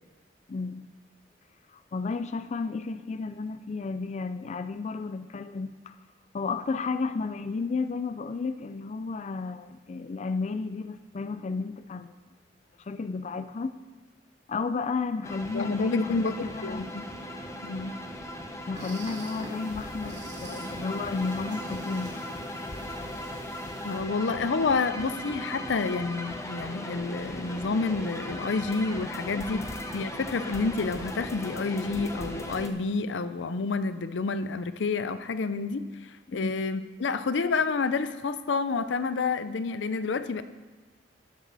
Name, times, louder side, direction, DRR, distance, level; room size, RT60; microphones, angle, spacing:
voice 1, 0.5-0.9 1.7-5.9 6.3-12.1 12.8-13.8 14.5-16.9 18.7-22.4 29.4-29.7 36.3-36.6, left 4 dB, 40° left, 11 dB, 0.4 m, -32 dB
sound 1, 15.2-32.7, left 1 dB, 15° left, 0.8 m, -38 dB
voice 2, 15.5-16.3 16.6-17.0 17.6-18.0 23.8-29.6 29.9-40.4, left 4 dB, 90° left, 12 dB, 0.5 m, -29 dB
sound 2, 18.7-24.0, right 1 dB, 70° right, 3.1 m, -46 dB
12.5 x 10.5 x 4.0 m, 1.3 s
head